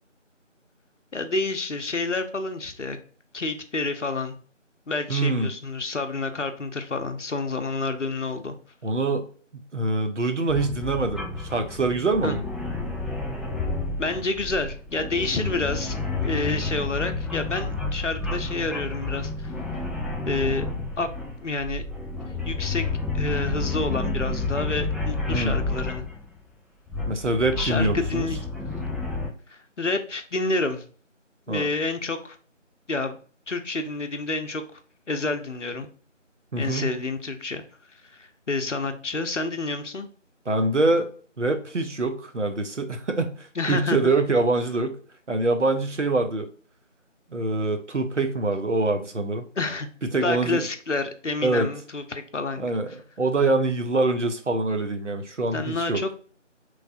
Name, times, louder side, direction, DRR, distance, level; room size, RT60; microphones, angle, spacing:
voice 1, 1.1-3.0 3.3-4.4 4.9-8.6 12.2-12.4 14.0-19.5 20.3-20.7 21.0-21.1 21.4-21.8 22.4-22.9 23.1-26.1 27.6-28.4 29.5-30.8 31.5-32.4 32.9-33.2 33.5-34.8 35.1-35.9 36.6-37.6 38.1-40.1 43.6-44.1 49.6-49.9 50.2-52.7 55.5-56.1, left 3 dB, 70° left, 7 dB, 0.7 m, -29 dB
voice 2, 5.1-5.5 8.8-9.3 9.7-12.4 15.3-15.5 25.3-25.6 27.1-28.3 31.5-31.7 36.5-36.9 40.5-41.1 41.4-45.0 45.3-46.5 47.3-49.5 50.1-50.6 51.4-51.7 52.6-56.0, right 2 dB, 70° right, 6 dB, 0.7 m, -24 dB
sound 1, 10.5-26.3 26.9-29.3, left 3 dB, ahead, 0.4 m, -30 dB
4.4 x 3.2 x 2.5 m, 0.43 s
figure-of-eight pair, 180°, 38 cm